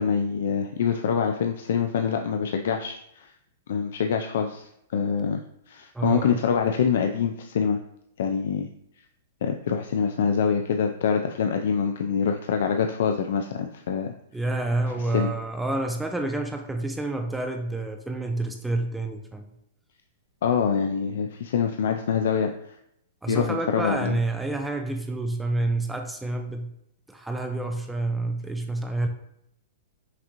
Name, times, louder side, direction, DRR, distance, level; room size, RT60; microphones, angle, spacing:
voice 1, 0.0-3.3 3.7-5.4 5.7-7.8 8.2-8.7 9.4-14.1 15.1-15.3 20.4-22.8 23.3-24.2, left 7 dB, 70° left, 5 dB, 0.3 m, -25 dB
voice 2, 5.9-6.4 14.3-19.5 23.2-26.7 27.1-29.1, right 2 dB, 5° right, 4 dB, 0.4 m, -28 dB
5.9 x 2.9 x 2.5 m, 0.77 s
hypercardioid pair, 145°, 0 cm